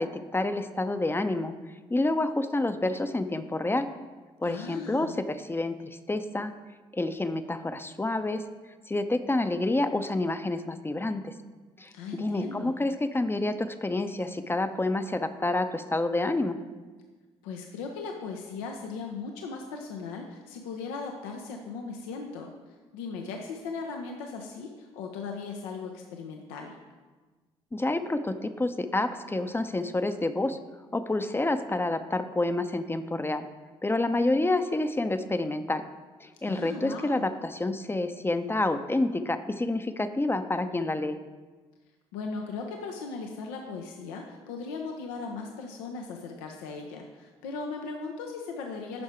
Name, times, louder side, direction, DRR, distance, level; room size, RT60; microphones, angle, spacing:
voice 1, 0.0-1.5 1.9-3.9 4.4-6.5 6.9-8.4 8.9-11.3 11.8-16.6 27.7-30.6 30.9-33.4 33.8-35.8 36.2-41.2, left 2 dB, 15° left, 9 dB, 0.6 m, -28 dB
voice 2, 4.4-5.2 11.9-12.8 17.4-22.5 22.9-26.8 36.4-37.3 42.1-49.0, left 4 dB, 80° left, 2 dB, 0.7 m, -38 dB
9.5 x 5.6 x 4.4 m, 1.3 s
hypercardioid pair, 50°, 14 cm